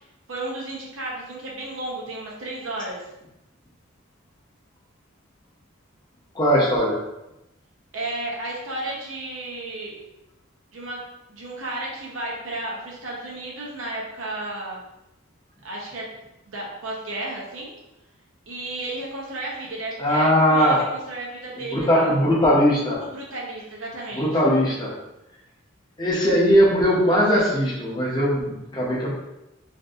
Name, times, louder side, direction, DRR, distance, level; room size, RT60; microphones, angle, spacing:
voice 1, 0.3-3.0 7.9-10.0 10.7-11.0 11.3-14.8 15.6-16.1 16.5-17.8 18.5-22.1 23.0-24.4, right 2 dB, 75° right, -4 dB, 0.8 m, -33 dB
voice 2, 6.3-7.0 20.0-20.8 21.7-23.0 24.1-24.9 26.0-29.1, equal, 20° left, -5 dB, 0.6 m, -19 dB
2.6 x 2.5 x 2.4 m, 0.92 s
head